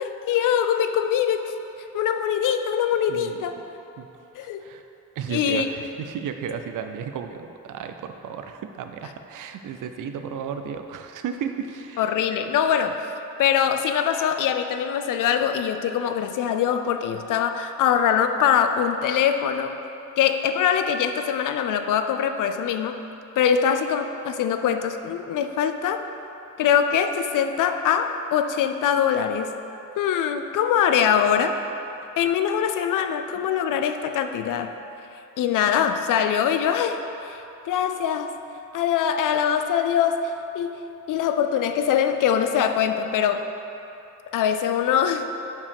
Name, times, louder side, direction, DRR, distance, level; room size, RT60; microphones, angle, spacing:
voice 1, 0.0-1.5 1.9-3.5 4.4-4.6 5.3-5.7 12.0-13.0 13.4-19.8 20.2-23.1 23.4-26.0 26.6-29.5 30.0-31.6 32.2-34.7 35.4-37.0 37.3-37.4 37.7-38.3 38.7-40.8 41.1-43.5 44.3-45.3, left 8 dB, 85° left, 8 dB, 0.5 m, -23 dB
voice 2, 3.1-3.5 4.0-4.1 4.4-4.8 5.2-12.1, right 7 dB, 80° right, 7 dB, 0.5 m, -34 dB
5.5 x 4.8 x 5.3 m, 2.9 s
cardioid pair, 95°, 31 cm